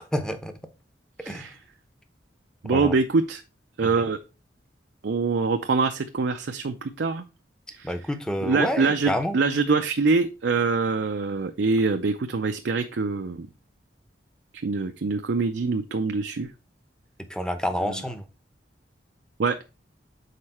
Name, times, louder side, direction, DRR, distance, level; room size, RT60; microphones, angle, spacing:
voice 1, 0.1-0.5 1.3-1.5 2.6-2.9 3.8-4.1 7.8-9.4 17.3-18.2, equal, 5° left, 0.8 m, -28 dB
voice 2, 1.2-1.6 2.6-3.4 3.8-4.2 5.0-7.3 7.7-7.9 8.4-13.5 14.6-16.5 17.8-18.0 19.4-19.6, right 4 dB, 75° right, 0.5 m, -24 dB
6.6 x 4.3 x 4.3 m
head